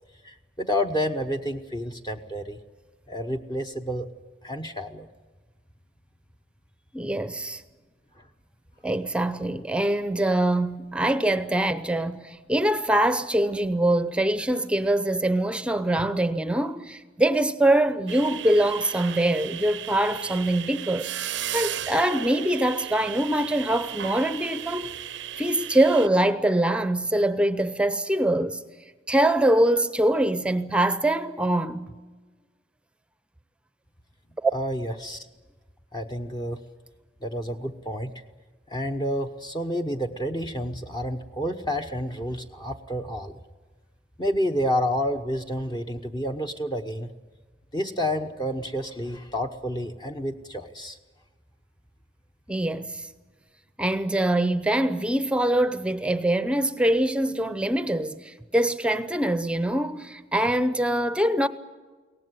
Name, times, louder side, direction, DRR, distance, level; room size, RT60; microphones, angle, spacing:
voice 1, 0.2-2.6 3.1-4.1 4.4-5.1 34.5-35.3 35.9-36.6 37.2-38.1 38.7-43.4 44.2-47.1 47.7-51.0, equal, 25° left, 0.9 m, -29 dB
voice 2, 6.9-7.6 8.8-24.9 25.4-28.6 29.1-31.9 34.4-34.5 52.5-53.1 53.8-61.5, right 1 dB, 5° right, 0.7 m, -24 dB
sound 1, 18.1-26.1, right 10 dB, 85° right, 0.6 m, -35 dB
23.0 x 18.0 x 9.7 m
head